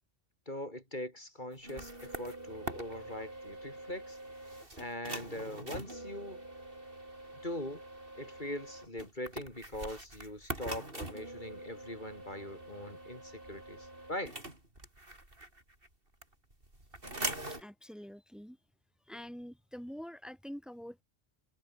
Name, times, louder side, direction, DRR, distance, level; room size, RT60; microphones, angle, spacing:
voice 1, 0.5-4.2 4.8-6.4 7.4-7.8 8.2-14.4, left 1 dB, 45° left, 6.6 m, -42 dB
sound 1, 1.5-15.9 16.2-17.6, right 1 dB, 60° right, 5.9 m, -44 dB
voice 2, 17.6-18.6 19.1-21.0, equal, ahead, 3.8 m, -46 dB
omnidirectional pair, 1.1 m